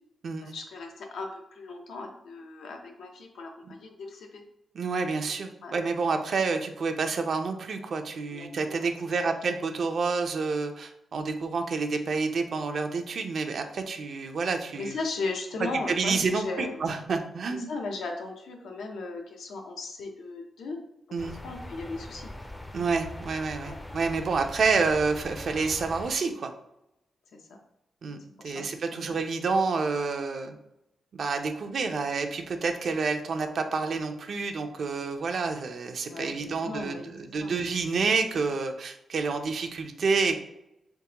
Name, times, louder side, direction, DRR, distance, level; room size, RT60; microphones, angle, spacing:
voice 1, 0.4-4.4 5.6-5.8 8.3-8.9 9.2-9.3 14.8-16.8 17.5-20.8 21.4-22.3 23.6-23.8 27.3-27.4 28.3-28.6 28.9-29.1 36.0-37.1 37.4-37.5, left 3 dB, 90° left, 2 dB, 0.6 m, -37 dB
voice 2, 4.7-15.0 15.9-17.7 21.1-21.4 22.7-26.5 28.0-28.2 28.4-30.5 31.1-40.4, right 4 dB, 60° right, 6 dB, 0.4 m, -29 dB
sound 1, 21.2-26.2, left 1 dB, 10° left, 0.4 m, -42 dB
3.7 x 3.5 x 2.9 m, 0.86 s
cardioid pair, 95°, 0 cm